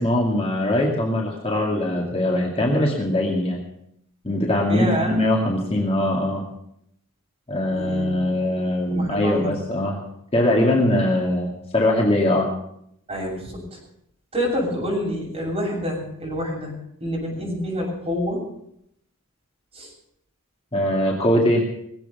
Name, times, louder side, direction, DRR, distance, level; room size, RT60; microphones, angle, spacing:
voice 1, 0.0-3.6 4.2-6.4 7.5-10.0 10.3-12.5 20.7-21.6, left 1 dB, 25° left, -2 dB, 2.3 m, -21 dB
voice 2, 4.7-5.2 7.7-8.2 8.9-9.5 13.1-13.8 14.3-16.7 17.0-18.4 19.7-19.9, equal, 30° right, -3 dB, 7.7 m, -27 dB
20.0 x 8.3 x 7.2 m, 0.74 s
head